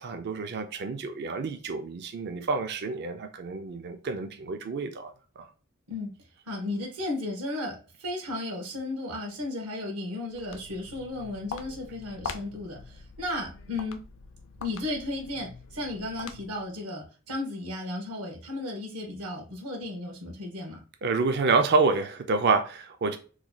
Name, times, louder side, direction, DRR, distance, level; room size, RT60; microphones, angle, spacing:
voice 1, 0.0-5.5 21.0-23.2, right 4 dB, 50° right, 0.4 m, -28 dB
voice 2, 6.4-14.0 14.6-20.8, left 2 dB, 75° right, 1.2 m, -34 dB
Walk footsteps, 10.2-16.7, left 5 dB, 60° left, 0.4 m, -43 dB
3.1 x 2.2 x 3.8 m
head